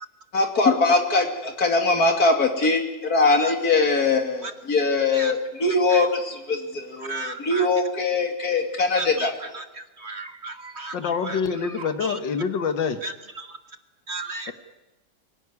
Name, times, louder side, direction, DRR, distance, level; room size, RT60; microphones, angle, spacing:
voice 1, 0.3-9.3, left 3 dB, 55° left, 4 dB, 3.2 m, -22 dB
voice 2, 3.2-3.5 4.4-4.5 5.1-5.3 5.9-6.1 7.0-7.7 8.9-12.2 13.0-13.6 14.1-14.5, right 2 dB, 40° right, 9 dB, 1.2 m, -35 dB
voice 3, 10.9-13.0, left 6 dB, 90° left, 9 dB, 2.2 m, -26 dB
24.5 x 18.0 x 9.8 m, 1.0 s
omnidirectional pair, 1.9 m